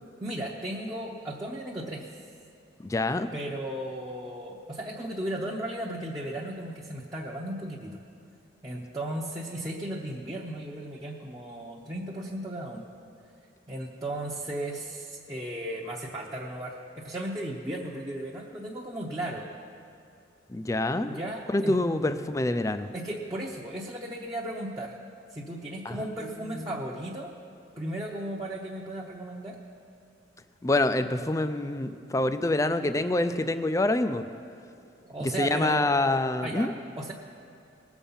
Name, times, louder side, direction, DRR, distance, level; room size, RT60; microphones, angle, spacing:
voice 1, 0.2-2.1 3.3-8.0 8.6-12.8 13.7-19.5 21.1-21.8 22.9-25.0 25.3-27.3 27.8-29.6 35.0-35.9 36.4-37.1, right 1 dB, 20° right, -3 dB, 0.8 m, -35 dB
voice 2, 2.8-3.3 20.5-21.2 21.5-22.9 25.9-26.0 26.5-26.8 30.6-34.2 35.2-36.7, left 2 dB, 15° left, 10 dB, 0.4 m, -26 dB
20.0 x 7.1 x 5.6 m, 2.5 s
head